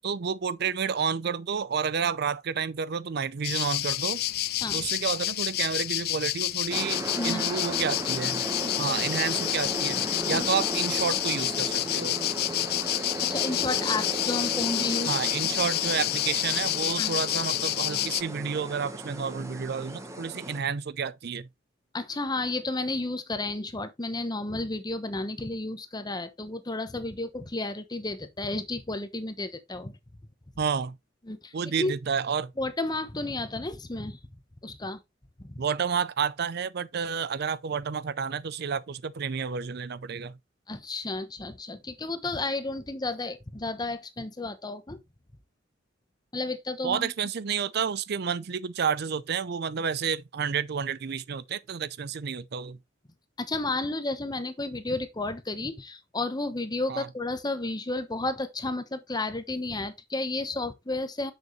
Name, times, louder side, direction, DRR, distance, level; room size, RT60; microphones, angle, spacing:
voice 1, 0.0-4.2 4.7-8.4 8.8-12.2 15.1-21.5 30.6-31.0 31.5-32.5 35.6-40.3 46.8-52.8 56.9-57.1, right 6 dB, 55° right, 0.5 m, -30 dB
sound 1, 3.4-18.2, left 15 dB, 55° left, 0.4 m, -29 dB
sound 2, 6.7-20.6, right 1 dB, 15° right, 1.1 m, -36 dB
voice 2, 7.1-7.5 8.6-8.7 10.3-10.4 13.2-15.1 15.4-15.5 17.0-17.2 21.9-30.0 31.3-31.9 32.6-34.2 34.6-35.0 35.4-35.6 40.7-45.0 46.3-47.1 53.4-61.3, left 2 dB, 20° left, 1.0 m, -32 dB
7.1 x 6.7 x 3.1 m
head